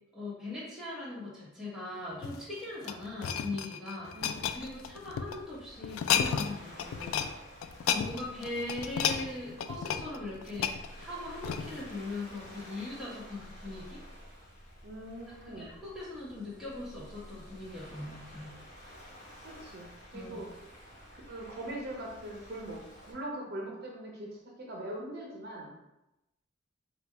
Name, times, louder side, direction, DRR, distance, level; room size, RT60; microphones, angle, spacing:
voice 1, 0.1-7.2 7.8-14.0 15.6-18.5 20.1-20.5 23.5-23.7, left 2 dB, ahead, -8 dB, 1.2 m, -40 dB
sound 1, 2.1-5.4 5.8-6.5 6.8-7.3 7.6-11.9 12.4-12.6, left 8 dB, 85° left, 0.3 m, -33 dB
voice 2, 4.1-4.6 14.8-15.7 19.4-20.5 21.1-25.7, right 1 dB, 55° right, -1 dB, 0.7 m, -42 dB
Waves surf, 4.2-23.1, equal, 40° left, 1.1 m, -51 dB
3.9 x 2.2 x 4.4 m, 0.93 s
head